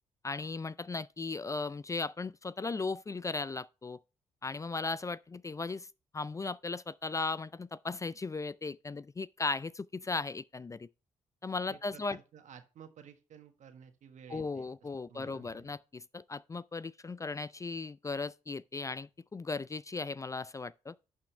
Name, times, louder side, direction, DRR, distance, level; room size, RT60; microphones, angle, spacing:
voice 1, 0.2-4.0 4.4-5.9 6.1-10.9 11.4-12.2 14.3-20.9, left 3 dB, 25° left, 0.4 m, -37 dB
voice 2, 11.7-14.7 15.1-15.7, right 8 dB, 70° right, 1.4 m, -53 dB
11.5 x 6.3 x 3.3 m
supercardioid pair, 55°, 13 cm